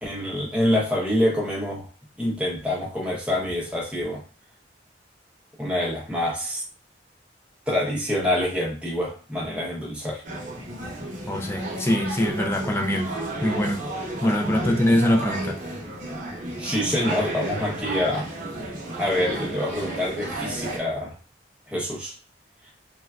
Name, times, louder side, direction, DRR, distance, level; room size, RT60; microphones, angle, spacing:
voice 1, 0.0-1.9 2.2-4.2 5.6-6.6 7.7-10.2 14.4-14.7 16.6-18.3 19.0-21.2 21.7-22.1, left 1 dB, 5° right, -4 dB, 0.7 m, -26 dB
sound 1, 10.2-20.8, right 1 dB, 45° right, 0.8 m, -33 dB
voice 2, 11.3-13.1 13.4-13.8 14.2-15.6, left 1 dB, 15° left, 2 dB, 0.3 m, -23 dB
3.2 x 2.2 x 2.3 m, 0.36 s
head